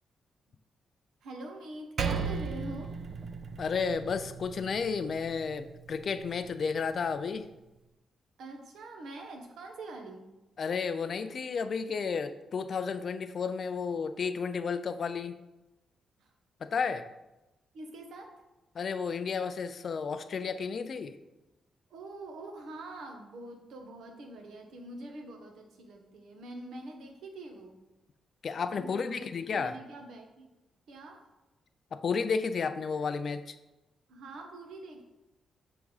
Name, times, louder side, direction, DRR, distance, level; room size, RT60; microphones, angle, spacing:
voice 1, 1.2-2.9 8.4-10.3 16.2-16.3 17.7-18.4 21.9-27.8 28.7-30.5 30.9-31.2 34.1-35.0, right 2 dB, 85° right, 4 dB, 1.0 m, -44 dB
Percussion, 2.0-6.8, right 5 dB, 45° right, 0.4 m, -37 dB
voice 2, 3.6-7.5 10.6-15.4 16.6-17.1 18.7-21.2 28.4-29.8 31.9-33.6, left 5 dB, 45° left, 11 dB, 0.3 m, -32 dB
6.6 x 3.5 x 4.7 m, 1.0 s
wide cardioid pair, 160°, 0 cm